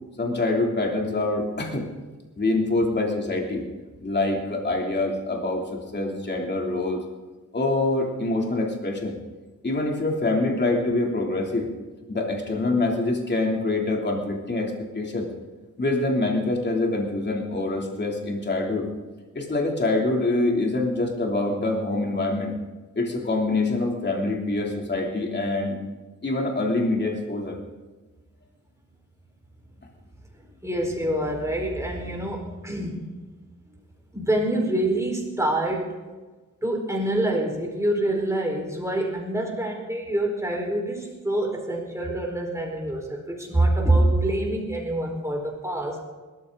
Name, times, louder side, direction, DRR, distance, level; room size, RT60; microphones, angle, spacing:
voice 1, 0.2-1.9 2.4-3.6 4.0-7.0 7.5-9.2 9.6-11.7 12.1-15.3 15.8-18.9 19.3-22.5 22.9-25.8 26.2-27.6, left 2 dB, 35° left, 0 dB, 3.2 m, -25 dB
voice 2, 30.6-33.0 34.1-36.0 36.6-46.0, right 1 dB, 10° right, 0 dB, 4.7 m, -26 dB
20.0 x 14.0 x 4.0 m, 1.3 s
wide cardioid pair, 110°, 31 cm